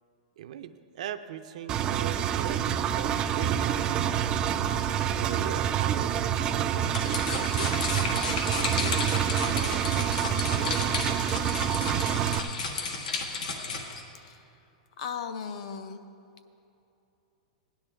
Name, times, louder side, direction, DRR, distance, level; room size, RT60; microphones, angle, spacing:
voice 1, 0.4-4.1 5.1-9.1 9.5-11.2, right 10 dB, 65° right, 9 dB, 0.6 m, -40 dB
Engine, 1.7-12.4, right 9 dB, 20° right, 0.3 m, -27 dB
sound 1, 6.8-14.0, left 4 dB, 90° left, 1.5 m, -33 dB
voice 2, 15.0-16.0, left 6 dB, 55° left, 9 dB, 0.7 m, -36 dB
16.5 x 10.5 x 3.5 m, 2.8 s
supercardioid pair, 165°, 4 cm